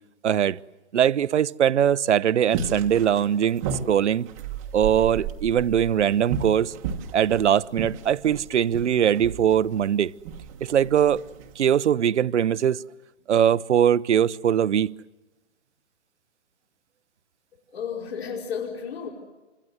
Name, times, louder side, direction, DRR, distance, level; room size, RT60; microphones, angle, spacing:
voice 1, 0.2-0.6 0.9-4.3 4.7-6.7 7.1-10.1 10.6-11.2 11.6-12.8 13.3-15.0, right 9 dB, 75° right, 0.8 m, -21 dB
sound 1, 2.5-11.6, right 7 dB, 15° right, 1.1 m, -34 dB
voice 2, 17.7-19.1, left 7 dB, 60° left, 5.1 m, -32 dB
29.0 x 25.0 x 8.0 m
hypercardioid pair, 175°, 35 cm